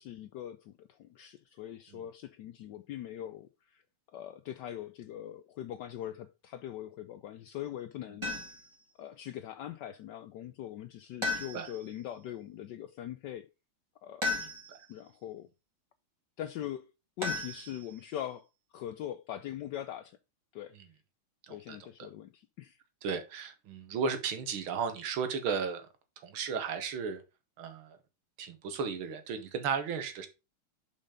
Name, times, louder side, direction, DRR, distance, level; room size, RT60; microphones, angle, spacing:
voice 1, 0.0-3.8 4.1-8.3 9.0-13.5 14.0-14.4 14.9-15.5 16.4-16.9 17.2-20.2 20.5-20.8 21.5-22.8, left 11 dB, 75° left, 1.0 m, -42 dB
sound 1, 8.2-8.7 11.2-11.9 14.2-14.9 17.2-18.1, left 3 dB, 15° right, 2.0 m, -35 dB
voice 2, 21.4-21.8 23.0-25.9 26.2-27.2 27.6-28.0 28.4-30.3, right 6 dB, 80° right, 2.0 m, -34 dB
5.6 x 5.2 x 4.9 m
omnidirectional pair, 2.3 m